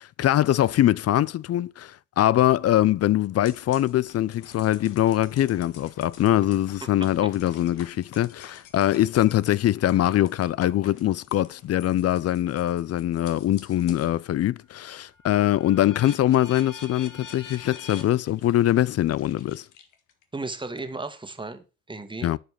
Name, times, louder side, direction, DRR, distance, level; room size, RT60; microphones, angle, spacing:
voice 1, 0.0-19.6 22.2-22.4, left 13 dB, 55° left, 0.5 m, -23 dB
sound 1, 3.5-14.2 14.6-20.2, left 7 dB, 90° left, 1.7 m, -47 dB
voice 2, 20.3-22.3, right 3 dB, 15° right, 1.5 m, -35 dB
11.0 x 5.1 x 4.8 m
cardioid pair, 90°, 30 cm